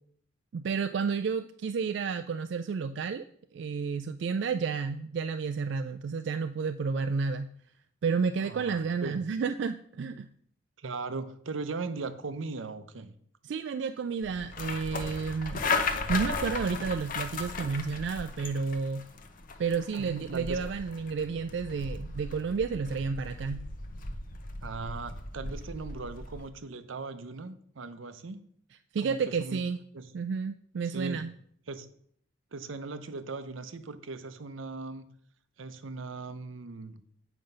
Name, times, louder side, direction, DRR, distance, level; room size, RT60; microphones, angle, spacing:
voice 1, 0.5-3.3 3.5-7.5 8.0-10.3 13.4-15.6 16.1-19.1 19.6-23.7 28.9-29.8 30.1-31.3, right 5 dB, 65° right, 9 dB, 0.3 m, -31 dB
voice 2, 8.4-9.2 10.8-13.1 19.9-20.6 24.6-28.4 29.0-29.6 29.9-30.1 30.8-31.2 31.7-31.9 32.5-35.1 35.6-37.0, right 3 dB, 85° right, 11 dB, 0.7 m, -39 dB
sound 1, 14.2-26.5, left 3 dB, 45° left, 0.7 m, -36 dB
7.8 x 5.1 x 5.4 m, 0.65 s
head